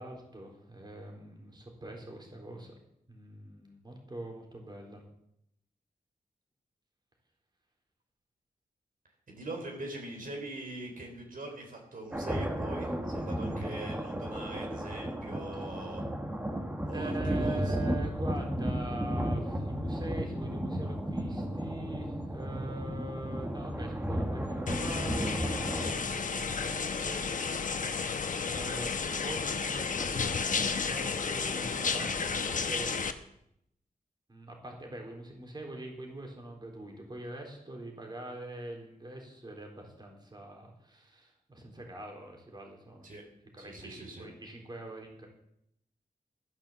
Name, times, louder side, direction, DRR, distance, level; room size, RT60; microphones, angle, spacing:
voice 1, 0.0-2.7 3.1-5.0 15.5-15.9 16.9-27.8 28.4-28.9 29.2-32.9 34.3-43.1 43.5-45.3, right 1 dB, 25° right, 1 dB, 3.9 m, -43 dB
voice 2, 9.3-16.0 16.9-17.7 43.0-43.2 43.6-44.3, right 2 dB, 60° right, 1 dB, 4.0 m, -42 dB
sound 1, 12.1-25.9, equal, 10° right, 1.4 m, -34 dB
sound 2, 24.7-33.1, left 5 dB, 55° left, 1.1 m, -32 dB
14.0 x 10.5 x 7.4 m, 0.76 s
wide cardioid pair, 125°, 16 cm